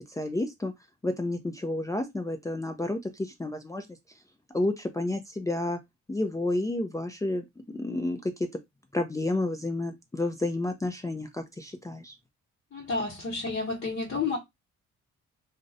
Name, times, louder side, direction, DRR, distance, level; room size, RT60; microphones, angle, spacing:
voice 1, 0.1-0.7 1.0-3.9 4.5-5.8 6.1-7.4 7.7-8.5 8.9-12.1, left 2 dB, 10° left, 0.3 m, -30 dB
voice 2, 12.7-14.4, left 4 dB, 45° left, 0.9 m, -30 dB
2.4 x 2.0 x 2.6 m
cardioid pair, 90°, 30 cm